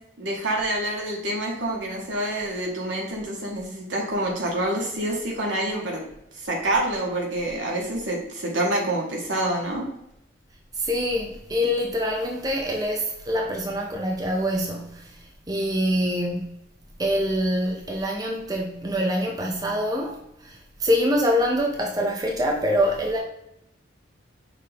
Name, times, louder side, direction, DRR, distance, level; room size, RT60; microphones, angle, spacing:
voice 1, 0.2-6.0 6.3-9.9, right 1 dB, 80° right, 1.3 m, -27 dB
voice 2, 10.7-15.2 15.5-16.5 17.0-23.2, equal, 20° right, 0.5 m, -25 dB
5.6 x 2.5 x 3.3 m
head